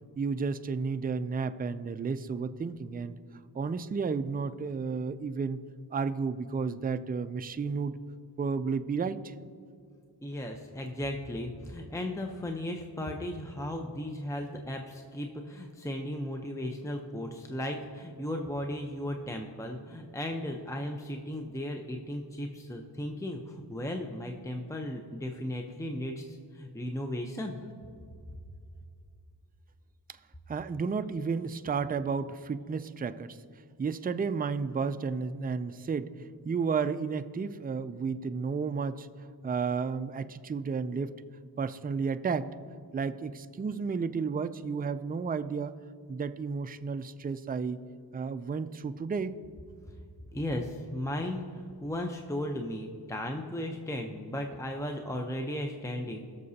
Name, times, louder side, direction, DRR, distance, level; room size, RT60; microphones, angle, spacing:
voice 1, 0.2-3.2 3.5-5.6 5.9-8.0 8.4-9.3 30.5-33.4 33.8-36.1 36.4-39.1 39.4-41.1 41.6-42.5 42.9-45.7 46.1-47.9 48.1-49.4, right 5 dB, 25° right, 12 dB, 0.4 m, -32 dB
voice 2, 10.2-27.7 50.3-56.2, left 1 dB, 5° left, 3 dB, 0.7 m, -36 dB
17.0 x 6.8 x 2.8 m, 2.3 s
cardioid pair, 45°, 41 cm